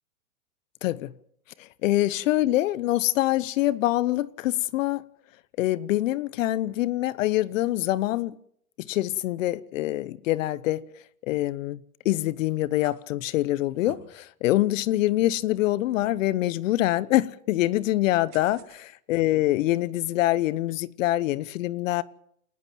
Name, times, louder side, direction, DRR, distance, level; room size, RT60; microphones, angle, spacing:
voice 1, 0.8-1.1 1.6-5.1 5.6-8.3 8.8-10.8 11.2-11.8 12.0-22.0, left 15 dB, 55° left, 1.0 m, -25 dB
sound 1, 12.0-12.3 12.7-12.9 13.6-14.0 14.6-14.7 15.1-15.3 16.0-16.2 18.3-18.8, right 11 dB, 70° right, 6.7 m, -48 dB
29.0 x 12.0 x 7.5 m
hypercardioid pair, 115°, 45 cm